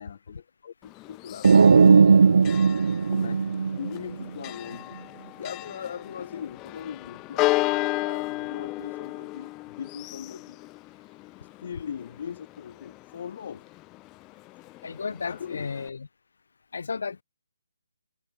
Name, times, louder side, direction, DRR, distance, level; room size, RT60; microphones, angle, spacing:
voice 1, 0.0-2.7 3.1-3.4 3.8-5.0 5.3-10.6 11.6-13.7 15.3-15.7, left 8 dB, 45° left, 5.5 m, -40 dB
Church bell, 0.8-15.9, left 21 dB, 15° left, 0.4 m, -34 dB
sound 1, 1.4-4.2, right 5 dB, 65° right, 0.4 m, -17 dB
voice 2, 14.8-16.1 16.7-17.2, left 5 dB, 65° left, 7.4 m, -33 dB
hypercardioid pair, 160°, 0 cm